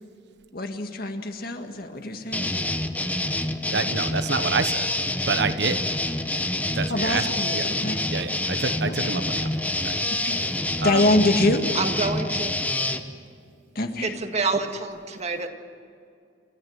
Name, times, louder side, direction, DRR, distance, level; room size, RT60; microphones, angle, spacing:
voice 1, 0.5-2.5 6.9-8.0 8.8-9.1 10.2-10.4 10.8-11.6 13.8-14.1, left 2 dB, 55° left, 5 dB, 2.0 m, -25 dB
sound 1, 2.3-13.0, left 1 dB, 10° left, 1.0 m, -27 dB
voice 2, 3.7-4.9 5.3-5.9 6.7-7.7 8.1-9.5 9.8-10.0 10.8-11.1, right 4 dB, 65° right, 10 dB, 1.2 m, -27 dB
voice 3, 11.7-12.6 14.0-15.5, right 3 dB, 35° right, 5 dB, 1.8 m, -27 dB
29.0 x 14.5 x 9.6 m, 2.4 s
head